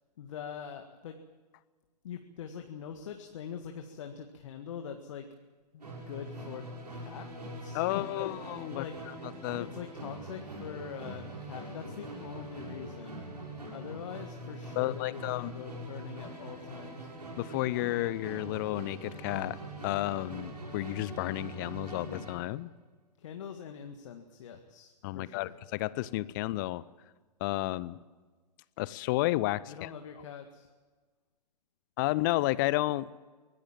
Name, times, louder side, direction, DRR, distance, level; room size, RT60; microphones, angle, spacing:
voice 1, 0.2-1.2 2.0-5.3 5.7-6.7 6.9-8.4 8.7-13.3 13.7-17.1 23.2-25.5 29.7-30.7, left 8 dB, 45° left, 5 dB, 1.8 m, -43 dB
Musical instrument, 5.8-22.5, right 1 dB, 75° right, 7.5 m, -43 dB
voice 2, 7.7-9.7 14.8-15.5 17.4-19.6 19.8-22.7 25.0-26.8 27.4-28.0 28.8-29.9 32.0-33.1, left 18 dB, 30° left, 20 dB, 0.6 m, -32 dB
24.0 x 18.0 x 7.5 m, 1.4 s
figure-of-eight pair, 120°, 21 cm